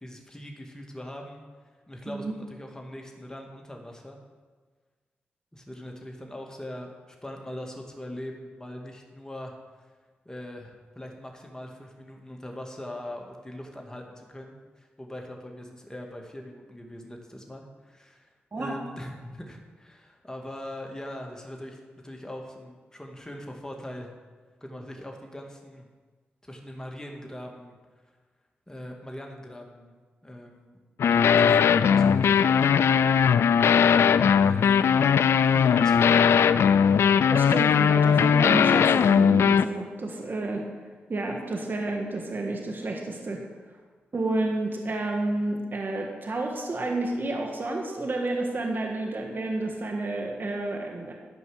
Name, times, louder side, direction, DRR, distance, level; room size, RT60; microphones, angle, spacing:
voice 1, 0.0-1.4 1.9-4.2 5.5-9.5 10.3-24.1 24.6-25.9 26.4-27.8 28.7-30.8 31.4-32.8 34.4-35.0 35.5-36.5, left 1 dB, 15° left, 1 dB, 2.2 m, -41 dB
sound 1, 31.0-39.6, left 7 dB, 80° left, 0.3 m, -19 dB
voice 2, 37.3-40.7 41.1-43.4 44.1-51.1, right 2 dB, 50° right, 1 dB, 1.6 m, -30 dB
12.0 x 5.3 x 7.9 m, 1.4 s
cardioid pair, 50°, 4 cm